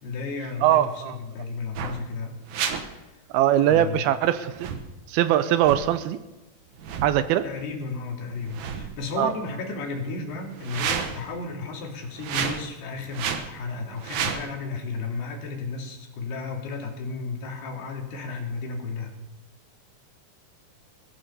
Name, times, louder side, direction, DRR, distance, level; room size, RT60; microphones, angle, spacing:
voice 1, 0.0-2.4 2.9-3.0 3.6-4.1 7.4-19.1, left 4 dB, 85° left, 1 dB, 4.4 m, -33 dB
voice 2, 0.6-1.2 3.3-4.7 5.1-6.2 7.0-7.4 9.2-9.3, right 12 dB, 80° right, 12 dB, 2.5 m, -21 dB
sound 1, 1.8-2.0 2.5-2.8 4.5-4.9 5.6-5.8 6.8-7.2 8.3-9.1 10.5-11.3 12.1-12.7 13.1-13.5 14.0-14.4, right 7 dB, 65° right, 2.1 m, -30 dB
21.5 x 14.5 x 4.2 m, 1.0 s
omnidirectional pair, 4.6 m